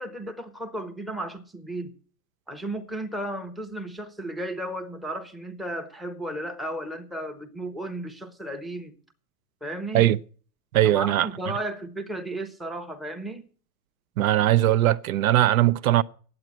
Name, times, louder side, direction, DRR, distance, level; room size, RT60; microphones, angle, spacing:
voice 1, 0.0-1.9 2.5-8.9 9.6-10.1 10.8-13.5, right 1 dB, ahead, 0.7 m, -34 dB
voice 2, 10.7-11.3 14.2-16.0, right 13 dB, 60° right, 0.6 m, -20 dB
9.7 x 7.8 x 9.0 m
hypercardioid pair, 145°, 47 cm